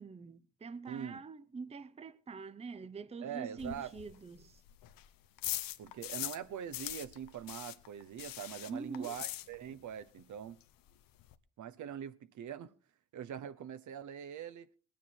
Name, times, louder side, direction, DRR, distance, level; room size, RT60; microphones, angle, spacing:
voice 1, 0.0-4.6 8.7-9.1, right 4 dB, 20° right, 0.6 m, -44 dB
voice 2, 0.9-1.2 3.2-3.9 5.8-10.6 11.6-12.7 13.1-14.7, right 9 dB, 60° right, 1.0 m, -43 dB
sound 1, 3.6-6.5 6.7-9.9 10.2-10.3 10.6-10.7 10.9-11.4, left 15 dB, 85° left, 0.9 m, -42 dB
19.5 x 9.4 x 4.5 m
cardioid pair, 95°, 33 cm